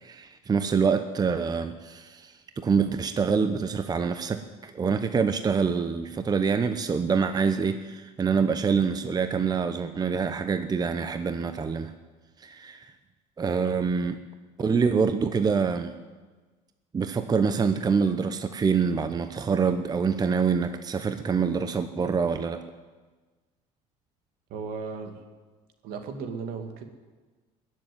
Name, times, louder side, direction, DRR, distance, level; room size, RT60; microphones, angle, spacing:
voice 1, 0.0-11.9 12.4-12.9 13.4-14.2 14.6-15.9 16.9-22.6, right 5 dB, 25° right, 9 dB, 0.9 m, -26 dB
voice 2, 24.5-25.1 25.8-26.8, right 5 dB, 70° right, 6 dB, 2.3 m, -35 dB
20.0 x 7.5 x 9.5 m, 1.3 s
supercardioid pair, 105°, 16 cm